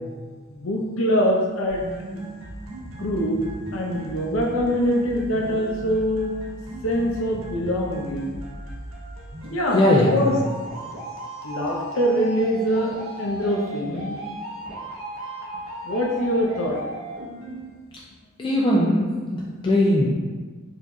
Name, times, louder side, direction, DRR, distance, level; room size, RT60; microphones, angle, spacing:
voice 1, 0.5-1.8 2.1-2.2 3.0-3.4 3.7-6.4 6.8-8.4 9.5-10.4 11.4-12.9 13.2-14.2 15.8-16.8, equal, 85° left, 0 dB, 0.7 m, -24 dB
sound 1, 1.7-17.7, right 1 dB, 90° right, 0.8 m, -36 dB
voice 2, 9.7-10.3 18.4-20.1, left 1 dB, 25° left, -5 dB, 0.3 m, -20 dB
4.8 x 2.6 x 2.3 m, 1.4 s
head